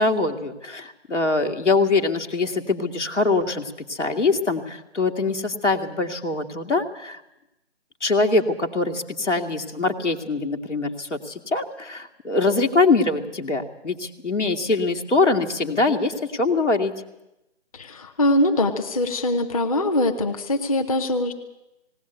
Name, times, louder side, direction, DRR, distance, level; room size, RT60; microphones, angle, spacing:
voice 1, 0.0-7.2 8.0-16.9, left 3 dB, 90° left, 3 dB, 2.2 m, -23 dB
voice 2, 17.7-21.3, left 1 dB, 30° left, 5 dB, 1.0 m, -22 dB
19.0 x 17.5 x 8.1 m, 0.92 s
figure-of-eight pair, 165°, 35 cm